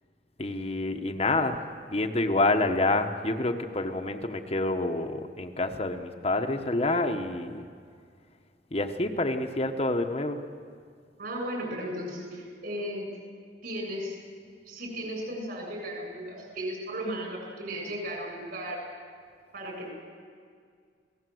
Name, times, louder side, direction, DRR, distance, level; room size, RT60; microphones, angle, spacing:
voice 1, 0.4-1.6 1.9-7.6 8.7-10.4, left 2 dB, 35° left, 4 dB, 1.1 m, -27 dB
voice 2, 11.2-13.1 13.6-14.2 14.7-18.8 19.5-19.9, equal, 55° right, 1 dB, 7.5 m, -35 dB
28.5 x 18.0 x 7.9 m, 2.1 s
head